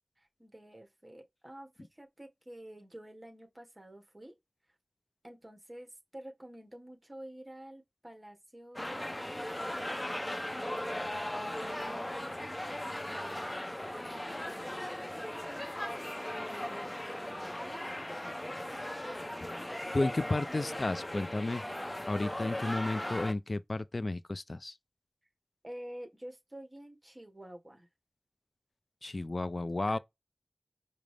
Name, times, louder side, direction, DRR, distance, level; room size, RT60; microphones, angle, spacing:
voice 1, 0.4-4.3 5.2-12.6 13.9-17.9 25.6-27.9 29.9-30.0, right 1 dB, 30° right, 1.4 m, -50 dB
sound 1, 8.8-23.3, left 1 dB, 20° left, 0.7 m, -38 dB
voice 2, 19.9-21.6 22.1-24.7 29.0-30.0, left 2 dB, 55° left, 0.3 m, -33 dB
5.0 x 2.0 x 3.2 m
wide cardioid pair, 40°, 0 cm